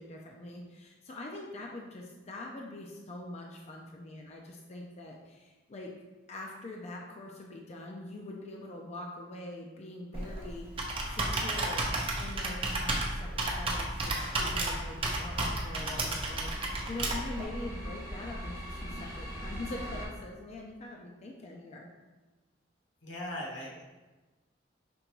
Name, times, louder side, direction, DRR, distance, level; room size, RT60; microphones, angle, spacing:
voice 1, 0.0-5.9 6.3-11.9 12.2-21.9, left 2 dB, 35° left, 0 dB, 0.4 m, -43 dB
Computer keyboard, 10.1-17.4, right 2 dB, 30° right, 0.7 m, -33 dB
sound 1, 10.3-20.1, equal, 20° left, 0.8 m, -41 dB
voice 2, 23.0-23.8, left 1 dB, 85° left, -2 dB, 1.1 m, -39 dB
5.2 x 3.4 x 3.0 m, 1.2 s
head